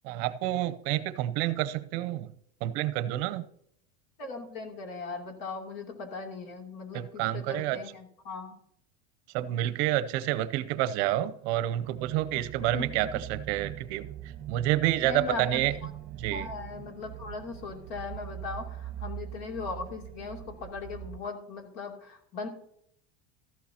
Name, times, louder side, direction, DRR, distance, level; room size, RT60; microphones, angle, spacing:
voice 1, 0.0-2.3 2.6-3.5 6.9-7.8 9.3-14.1 14.5-15.7 16.2-16.5, right 13 dB, 55° right, 14 dB, 0.7 m, -29 dB
voice 2, 4.2-8.6 12.3-12.4 12.7-12.9 15.0-15.9 16.3-22.5, left 4 dB, 55° left, 3 dB, 2.9 m, -39 dB
sound 1, 11.7-21.2, right 12 dB, 35° right, 1.1 m, -42 dB
14.0 x 11.5 x 2.9 m, 0.70 s
supercardioid pair, 155°, 39 cm